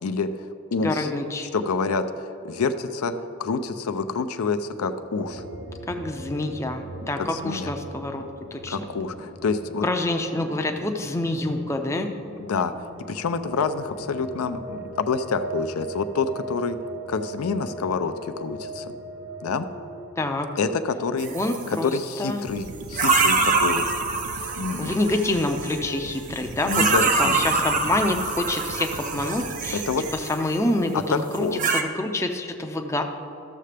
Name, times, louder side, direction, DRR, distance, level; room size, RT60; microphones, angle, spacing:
voice 1, 0.0-1.1 1.5-5.4 7.2-7.7 8.7-9.9 12.5-12.7 13.1-16.8 17.1-18.9 19.4-19.7 20.6-21.3 21.7-23.8 24.6-24.9 26.6-27.6 29.7-30.0 30.9-31.7, left 4 dB, 85° left, 9 dB, 0.5 m, -27 dB
voice 2, 0.8-1.5 5.9-8.2 8.5-8.8 9.8-12.1 20.2-20.5 21.3-22.4 24.8-26.8 27.2-29.8 30.1-33.0, left 2 dB, 15° left, 4 dB, 0.4 m, -27 dB
sound 1, 5.2-20.1, right 2 dB, 60° right, 0.9 m, -39 dB
sound 2, 21.2-21.7 22.9-25.8 26.6-30.5 31.3-31.8, right 4 dB, 35° right, 0.5 m, -25 dB
sound 3, 22.4-30.1, right 3 dB, 85° right, 0.6 m, -39 dB
13.5 x 6.6 x 3.3 m, 2.7 s
head